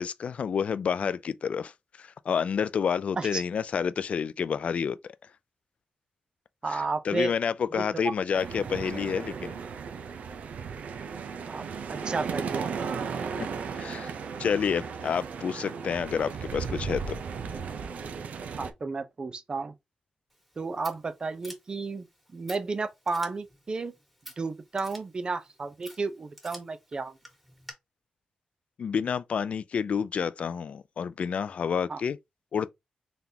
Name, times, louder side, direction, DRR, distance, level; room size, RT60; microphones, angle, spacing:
voice 1, 0.0-1.7 2.0-5.1 6.7-9.6 13.4-13.5 13.8-14.1 14.4-17.2 28.8-32.2 32.5-32.7, left 7 dB, 60° left, 0.4 m, -29 dB
voice 2, 6.6-7.3 7.7-8.1 11.5-12.8 18.6-19.7 20.6-22.1 22.3-23.9 24.4-27.2 31.9-32.0, right 4 dB, 35° right, 0.6 m, -33 dB
sound 1, 8.3-18.7, right 6 dB, 75° right, 0.6 m, -35 dB
Scissors, 20.3-27.7, equal, ahead, 1.7 m, -51 dB
4.0 x 3.5 x 2.8 m
cardioid pair, 100°, 3 cm